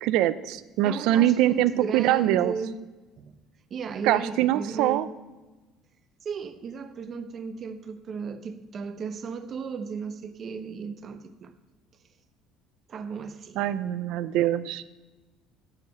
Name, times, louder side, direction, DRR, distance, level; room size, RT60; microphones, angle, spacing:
voice 1, 0.0-2.5 4.0-5.1 13.6-14.8, right 13 dB, 75° right, 0.5 m, -23 dB
voice 2, 0.8-2.8 3.2-3.3 3.7-5.1 6.2-11.5 12.9-13.6, right 5 dB, 40° right, 0.8 m, -35 dB
11.0 x 4.9 x 7.8 m
cardioid pair, 125°, 0 cm